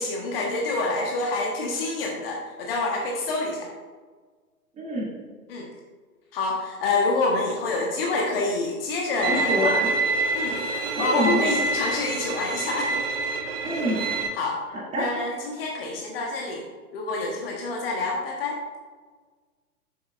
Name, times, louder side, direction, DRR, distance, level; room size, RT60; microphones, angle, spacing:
voice 1, 0.0-3.7 5.5-5.7 6.3-9.7 10.3-10.6 11.0-13.0 14.3-14.6 15.0-16.6 16.9-18.6, left 3 dB, 40° left, 0 dB, 1.4 m, -27 dB
voice 2, 4.8-5.1 9.3-9.9 11.0-11.4 13.6-14.0 14.9-15.0, equal, 15° right, -6 dB, 2.7 m, -26 dB
Bowed string instrument, 9.2-14.3, right 3 dB, 40° right, 0.9 m, -27 dB
12.0 x 7.2 x 2.5 m, 1.4 s
figure-of-eight pair, 110°, 45 cm